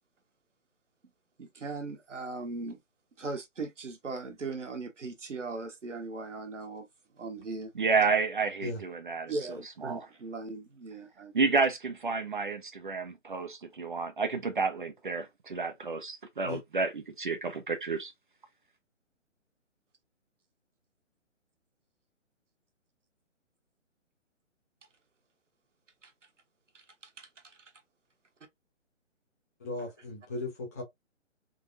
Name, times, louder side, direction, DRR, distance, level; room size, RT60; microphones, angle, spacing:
voice 1, 1.4-2.8 3.2-6.9 7.2-7.7 9.3-11.3 26.0-26.1 27.2-27.6, right 3 dB, 70° right, 1.1 m, -38 dB
voice 2, 7.8-9.3 9.8-10.1 11.3-18.1, right 4 dB, 40° right, 0.5 m, -30 dB
voice 3, 29.6-30.8, left 2 dB, 15° left, 0.6 m, -37 dB
3.7 x 2.7 x 2.5 m
figure-of-eight pair, 140°, 38 cm